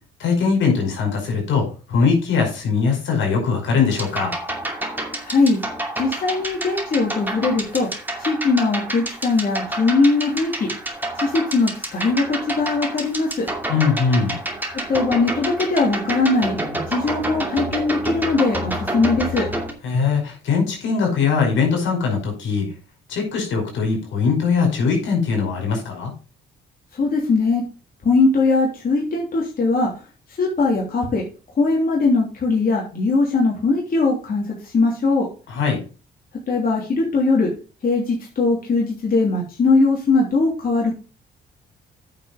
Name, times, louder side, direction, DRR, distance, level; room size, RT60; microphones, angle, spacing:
voice 1, 0.2-4.3 13.7-14.4 19.8-22.7 23.1-26.1 35.5-35.8, left 5 dB, 75° left, 2 dB, 5.1 m, -21 dB
sound 1, 3.9-19.7, right 1 dB, 10° right, 2.5 m, -29 dB
voice 2, 5.2-5.6 5.9-7.9 8.2-10.7 11.2-13.5 14.9-19.5 26.9-27.6 28.0-29.9 30.4-31.2 31.6-35.3 36.5-37.5 37.8-40.9, left 3 dB, 45° left, -2 dB, 3.1 m, -20 dB
9.1 x 6.1 x 5.2 m, 0.34 s
cardioid pair, 90°, 20 cm